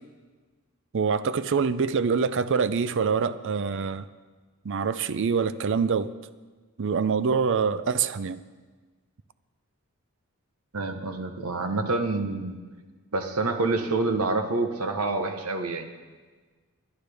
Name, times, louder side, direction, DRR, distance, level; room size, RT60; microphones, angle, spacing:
voice 1, 0.9-4.1 4.6-6.1 6.8-8.4, right 5 dB, 60° right, 0.5 m, -25 dB
voice 2, 10.7-12.6 13.1-15.9, right 3 dB, 85° right, 1.1 m, -27 dB
21.5 x 10.0 x 3.5 m
head